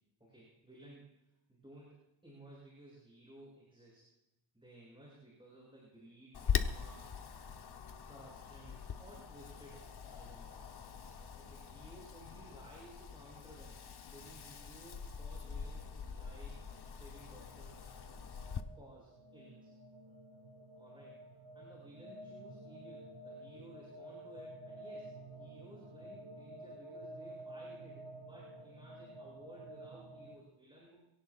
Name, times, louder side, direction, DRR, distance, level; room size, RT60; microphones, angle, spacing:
voice 1, 0.2-1.2 1.5-4.1 4.5-7.1 7.3-7.4 8.1-10.7 11.4-13.8 14.1-16.6 16.9-17.8 18.7-19.7 20.8-21.2 21.5-31.0, right 1 dB, 10° right, -5 dB, 7.4 m, -57 dB
Wind, 6.3-18.6, left 7 dB, 55° left, 1.1 m, -42 dB
sound 1, 14.2-30.4, right 1 dB, 75° right, 1.9 m, -51 dB
27.0 x 17.5 x 2.5 m, 0.90 s
wide cardioid pair, 105°, 46 cm